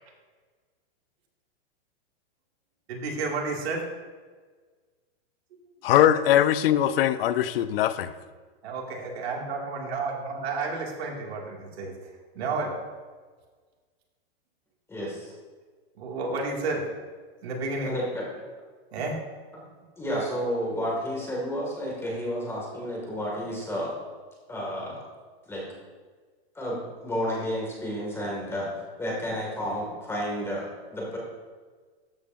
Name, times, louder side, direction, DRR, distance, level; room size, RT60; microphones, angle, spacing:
voice 1, 2.9-3.8 8.6-11.9 12.3-12.7 16.0-16.8 17.4-18.0 18.9-19.2, right 3 dB, 75° right, -1 dB, 2.3 m, -31 dB
voice 2, 5.8-8.1, left 11 dB, 65° left, 13 dB, 0.6 m, -21 dB
voice 3, 14.9-15.3 17.8-18.3 19.5-19.6 20.0-23.9 24.5-25.0 25.5-25.7 26.6-28.7 29.0-31.2, equal, 10° left, -3 dB, 2.1 m, -31 dB
13.0 x 7.6 x 2.6 m, 1.4 s
supercardioid pair, 150°, 31 cm